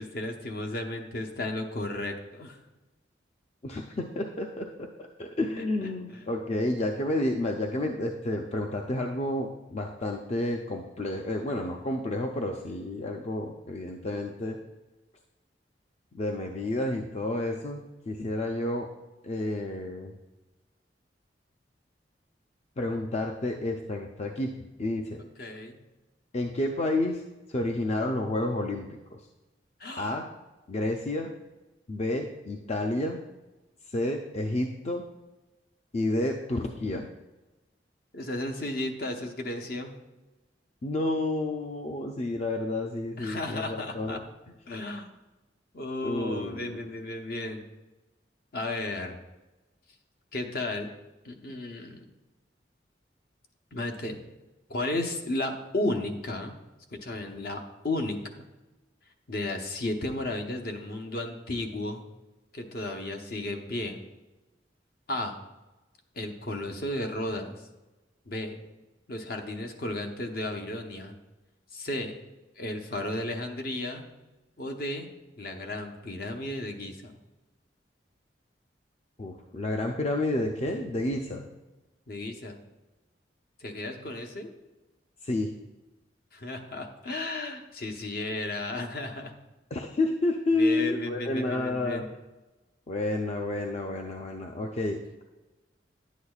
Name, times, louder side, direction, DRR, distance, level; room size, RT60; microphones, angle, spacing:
voice 1, 0.0-2.6 25.2-25.8 29.8-30.2 38.1-39.9 43.2-44.2 44.7-45.1 45.7-47.6 48.5-49.2 50.3-50.9 51.2-52.1 53.7-54.2 54.7-56.5 56.9-58.5 59.3-62.0 62.5-64.0 65.1-65.4 66.2-67.6 68.3-68.6 69.1-71.2 71.7-72.1 72.6-74.0 74.6-75.1 75.4-77.2 82.1-82.6 83.6-84.5 86.3-89.3 90.5-92.1, left 1 dB, 55° left, 4 dB, 0.9 m, -34 dB
voice 2, 3.6-4.9 5.2-14.6 16.1-18.9 19.2-20.1 22.8-25.2 26.3-27.2 27.5-29.3 30.0-30.3 30.7-31.3 31.9-33.2 33.8-35.1 35.9-37.1 40.8-44.2 46.0-46.8 79.2-81.5 85.2-85.5 89.7-92.1 92.9-95.2, left 2 dB, 35° left, 2 dB, 0.5 m, -30 dB
10.5 x 8.3 x 2.4 m, 1.1 s
head